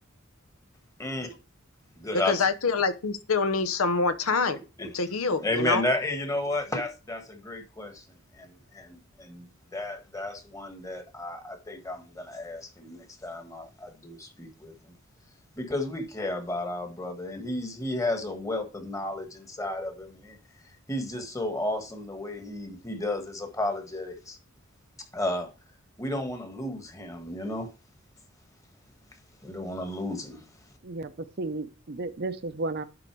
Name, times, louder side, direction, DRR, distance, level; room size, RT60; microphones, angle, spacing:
voice 1, 1.0-1.4 2.0-2.5 4.8-4.9 5.4-8.1 8.3-9.5 9.7-14.7 15.5-20.4 20.9-24.4 25.1-25.5 26.0-27.7 29.4-30.5, left 1 dB, 15° left, 1.3 m, -33 dB
voice 2, 2.3-4.6 4.9-5.8, left 4 dB, 90° left, 0.8 m, -26 dB
voice 3, 30.8-32.8, right 3 dB, 50° right, 0.6 m, -33 dB
11.0 x 3.8 x 4.6 m
head